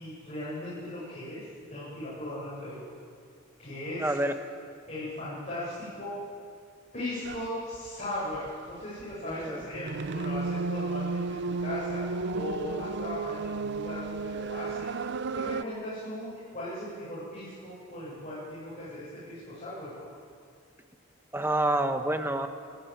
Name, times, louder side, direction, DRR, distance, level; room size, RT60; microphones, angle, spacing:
voice 1, 0.0-1.4 1.7-2.8 3.6-4.1 4.9-6.1 6.9-14.9 15.3-20.1, left 1 dB, 35° left, -10 dB, 7.5 m, -38 dB
voice 2, 4.0-4.3 9.2-9.6 21.3-22.5, right 1 dB, 10° right, 7 dB, 1.2 m, -27 dB
sound 1, 7.2-7.5 7.7-15.6, right 4 dB, 55° right, 0.5 m, -33 dB
28.0 x 12.5 x 9.3 m, 2.2 s
head